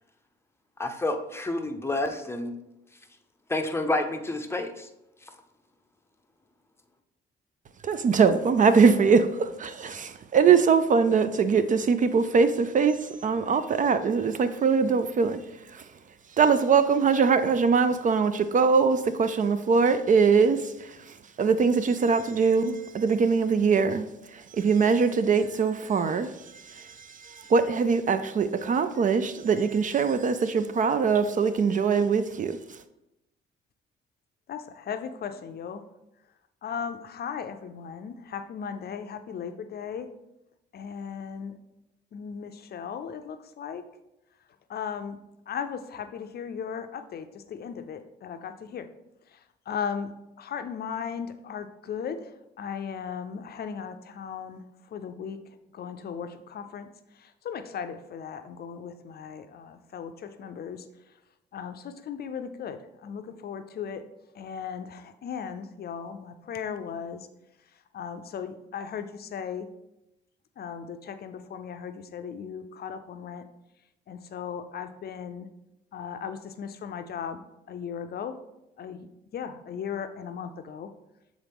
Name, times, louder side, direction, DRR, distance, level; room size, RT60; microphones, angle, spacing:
voice 1, 0.8-2.5 3.5-4.9, left 2 dB, 10° left, 0.7 m, -29 dB
voice 2, 7.8-15.4 15.7-15.8 16.4-24.1 24.3-32.6, right 5 dB, 40° right, 0.4 m, -22 dB
voice 3, 34.5-35.8 36.6-40.1 40.7-41.5 42.1-43.8 44.7-45.2 45.5-48.9 49.3-50.1 50.4-54.6 54.9-55.4 55.7-56.9 57.1-60.9 61.5-64.0 64.3-67.3 67.9-69.7 70.6-73.4 74.1-75.5 75.9-77.4 77.7-78.4 78.8-80.9, left 7 dB, 55° left, 0.5 m, -37 dB
7.2 x 3.7 x 3.5 m
cardioid pair, 90°, 20 cm